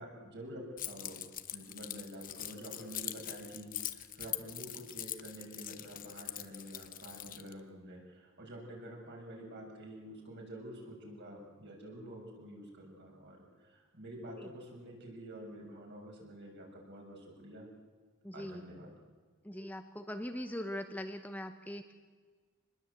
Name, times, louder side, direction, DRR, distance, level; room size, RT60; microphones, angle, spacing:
voice 1, 0.0-17.7 18.3-18.9, right 1 dB, 55° right, 0 dB, 6.6 m, -48 dB
Keys jangling, 0.8-7.5, left 12 dB, 40° left, 1.0 m, -42 dB
voice 2, 18.2-18.6 19.4-21.9, left 1 dB, 10° left, 6 dB, 0.9 m, -41 dB
26.0 x 20.5 x 8.2 m, 1.5 s
head